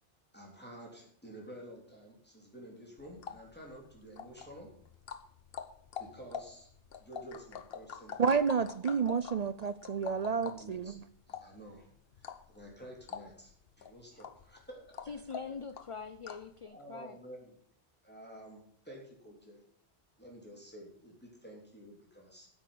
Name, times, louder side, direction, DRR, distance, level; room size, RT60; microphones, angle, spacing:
voice 1, 0.3-4.7 6.0-6.7 7.0-8.2 10.4-10.9 11.3-11.9 12.2-13.5 13.8-15.2 16.6-17.6 18.0-19.6 20.2-22.5, right 1 dB, 10° left, 3.3 m, -51 dB
sound 1, 3.0-16.6, left 7 dB, 60° left, 1.0 m, -47 dB
voice 2, 8.2-11.0, right 6 dB, 55° right, 0.5 m, -30 dB
voice 3, 15.1-17.2, left 5 dB, 40° left, 0.4 m, -43 dB
9.7 x 8.3 x 6.9 m
omnidirectional pair, 1.1 m